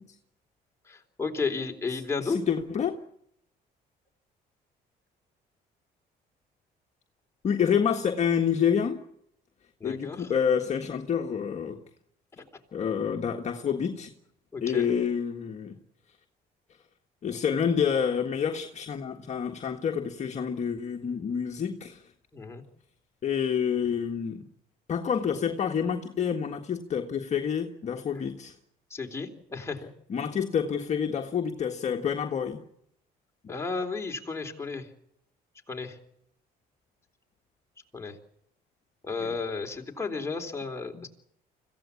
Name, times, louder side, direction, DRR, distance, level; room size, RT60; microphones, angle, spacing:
voice 1, 0.9-2.4 9.8-10.3 14.5-14.9 22.3-22.6 28.9-29.9 33.5-34.9 35.7-36.0 37.9-38.2 39.0-41.1, left 4 dB, 15° left, 3 dB, 3.8 m, -33 dB
voice 2, 1.9-3.0 7.4-9.0 9.8-11.8 12.7-14.1 14.6-15.8 17.2-22.0 23.2-24.4 24.9-28.5 30.1-32.6 33.4-33.5 39.2-39.3 40.9-41.1, left 7 dB, 40° left, 3 dB, 1.7 m, -28 dB
25.5 x 16.0 x 8.5 m, 0.74 s
cardioid pair, 110°, 17 cm